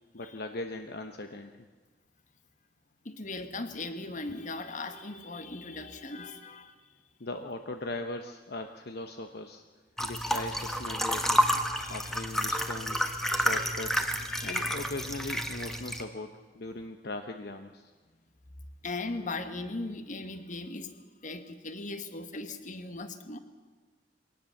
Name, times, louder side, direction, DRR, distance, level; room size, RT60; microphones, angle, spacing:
voice 1, 0.1-1.6 7.2-9.6 10.0-11.4 11.9-14.1 14.4-17.9, left 2 dB, 60° left, 6 dB, 1.0 m, -39 dB
voice 2, 3.0-6.8 11.7-12.2 12.9-14.8 18.8-20.9 21.2-23.4, left 3 dB, 45° left, 9 dB, 1.6 m, -39 dB
sound 1, 10.0-16.0, equal, ahead, 1.5 m, -30 dB
23.0 x 18.5 x 7.2 m, 1.4 s
head